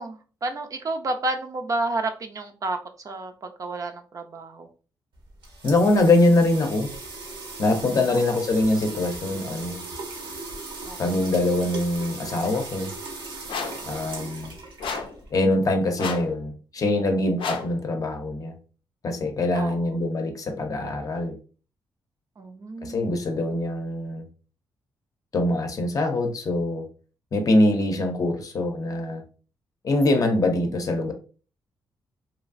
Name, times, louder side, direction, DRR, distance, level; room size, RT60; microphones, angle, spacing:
voice 1, 0.0-4.7 8.1-8.2 10.8-11.1 19.5-20.0 22.4-23.0, right 2 dB, 40° right, 0.4 m, -31 dB
sound 1, 5.1-15.4, right 3 dB, 85° right, 0.9 m, -38 dB
voice 2, 5.6-6.9 7.6-9.8 11.0-12.9 13.9-14.6 15.3-18.5 19.0-21.4 22.8-24.2 25.3-26.9 27.3-29.2 29.8-31.1, left 2 dB, 45° left, 0.6 m, -23 dB
sound 2, 13.5-13.9 14.8-15.2 16.0-16.4 17.4-17.8, left 5 dB, 85° left, 0.5 m, -31 dB
3.0 x 2.3 x 2.5 m
cardioid pair, 105°, 8 cm